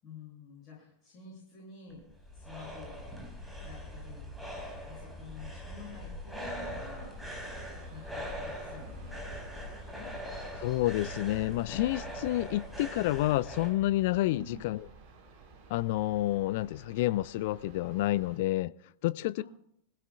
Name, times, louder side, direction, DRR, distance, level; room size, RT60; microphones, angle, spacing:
voice 1, 0.0-2.0 2.3-3.0 3.6-4.3 4.8-7.5 7.9-10.1 14.3-14.6 19.3-19.4, left 4 dB, 30° left, 7.4 m, -49 dB
sound 1, 1.9-13.7, equal, ahead, 4.9 m, -41 dB
sound 2, 7.1-18.4, right 3 dB, 45° right, 5.0 m, -54 dB
voice 2, 10.6-14.9 15.7-18.7 19.0-19.4, left 16 dB, 50° left, 0.4 m, -29 dB
24.0 x 16.0 x 2.4 m
figure-of-eight pair, 90°, 0 cm